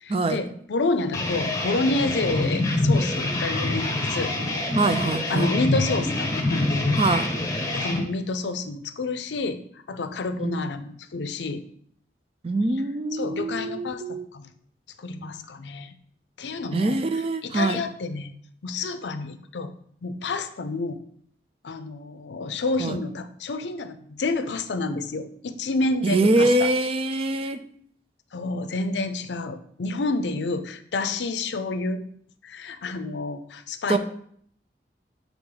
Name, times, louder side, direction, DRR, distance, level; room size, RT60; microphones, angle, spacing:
voice 1, 0.0-4.3 5.3-7.0 7.7-9.6 9.9-11.6 13.1-14.5 15.0-15.9 16.4-17.0 17.4-18.3 18.6-19.7 20.0-21.0 21.6-26.7 28.3-32.0 32.4-34.0, left 3 dB, 85° left, 10 dB, 0.5 m, -29 dB
sound 1, 1.1-8.0, left 2 dB, 20° left, 0.9 m, -25 dB
voice 2, 4.7-5.5 7.0-7.3 10.4-10.7 12.4-14.3 16.7-17.8 22.8-23.0 26.0-27.6 33.9-34.0, right 2 dB, 35° right, 9 dB, 0.4 m, -24 dB
7.3 x 3.5 x 3.9 m, 0.63 s
head